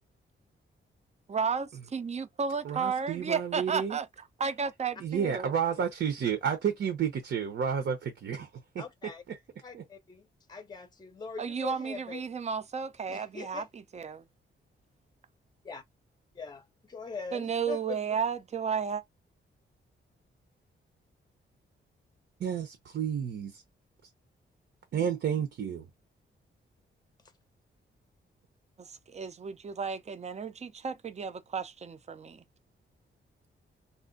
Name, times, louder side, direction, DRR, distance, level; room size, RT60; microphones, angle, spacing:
voice 1, 1.3-4.1 4.4-5.5 11.4-14.2 17.3-19.0 28.8-32.4, right 6 dB, 35° right, 0.5 m, -33 dB
voice 2, 2.6-4.0 5.0-8.5 8.7-8.9 9.3-9.4 9.7-9.8 22.4-23.6 24.9-25.9, right 7 dB, 65° right, 0.7 m, -31 dB
voice 3, 8.8-9.2 9.6-12.2 13.1-13.6 15.6-15.8 16.4-18.0, left 5 dB, 20° left, 0.6 m, -42 dB
2.5 x 2.1 x 3.8 m
cardioid pair, 105°, 21 cm